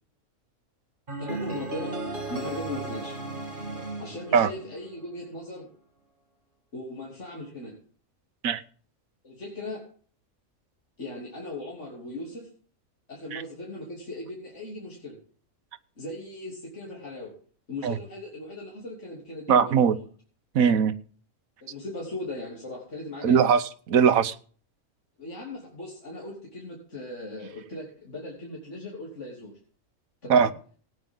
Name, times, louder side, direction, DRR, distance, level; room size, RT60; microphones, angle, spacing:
sound 1, 1.1-5.2, right 2 dB, 35° right, 2.7 m, -35 dB
voice 1, 1.2-2.0 2.3-3.2 4.0-5.7 6.7-7.7 9.2-9.8 11.0-12.5 13.1-15.2 16.0-17.3 17.7-20.0 21.6-23.5 25.2-29.5 30.2-30.5, left 1 dB, 50° left, -3 dB, 3.6 m, -38 dB
voice 2, 19.5-20.0 20.5-20.9 23.2-24.3 30.3-30.5, right 7 dB, 75° right, 12 dB, 1.3 m, -20 dB
18.0 x 9.4 x 3.8 m, 0.43 s
omnidirectional pair, 1.5 m